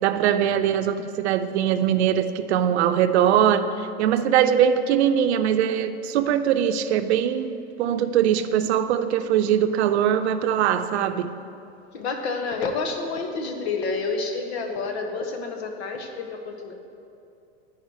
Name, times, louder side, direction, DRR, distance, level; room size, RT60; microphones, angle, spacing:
voice 1, 0.0-11.3, right 9 dB, 90° right, 10 dB, 0.6 m, -22 dB
voice 2, 11.9-16.7, left 4 dB, 75° left, 4 dB, 1.3 m, -29 dB
10.5 x 4.8 x 6.4 m, 2.6 s
supercardioid pair, 155°, 32 cm